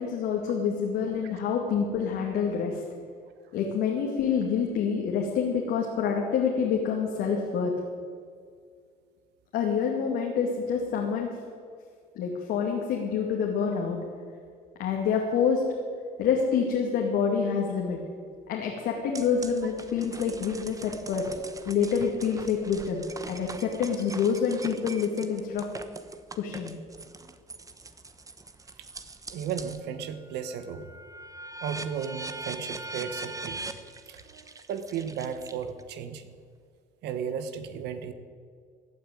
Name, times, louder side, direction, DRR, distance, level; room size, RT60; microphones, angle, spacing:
voice 1, 0.0-2.8 3.5-7.7 9.5-11.3 12.2-14.0 14.8-15.6 16.2-18.0 18.5-25.7 26.4-26.7, left 6 dB, 80° left, -1 dB, 2.3 m, -27 dB
sound 1, 19.2-29.9 30.3-35.9, right 3 dB, 20° right, 1.1 m, -42 dB
voice 2, 29.3-30.9 31.6-33.6 34.1-36.3 37.0-38.1, right 7 dB, 80° right, 10 dB, 1.4 m, -35 dB
16.0 x 9.5 x 9.3 m, 2.1 s
cardioid pair, 110°, 17 cm